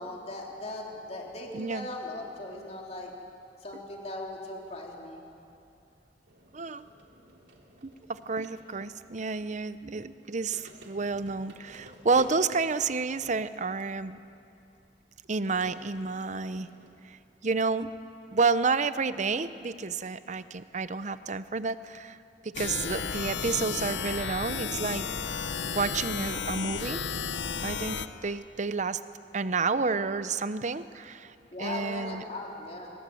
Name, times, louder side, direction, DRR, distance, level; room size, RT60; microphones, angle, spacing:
voice 1, 0.0-3.1 3.6-5.2 31.5-32.9, left 1 dB, 40° left, -1 dB, 3.5 m, -38 dB
voice 2, 1.5-1.9 6.5-6.9 7.8-14.2 15.3-16.7 17.0-17.9 18.3-22.2 22.4-25.0 25.7-27.0 27.6-28.0 28.2-29.0 29.3-31.3 31.6-32.2, right 4 dB, 45° right, 13 dB, 0.7 m, -30 dB
sound 1, 6.3-13.6 14.4-14.5 15.6-16.9, right 1 dB, 80° right, 2.8 m, -52 dB
sound 2, 22.5-28.1, left 6 dB, 80° left, 1.0 m, -33 dB
25.5 x 21.0 x 7.8 m, 2.6 s
head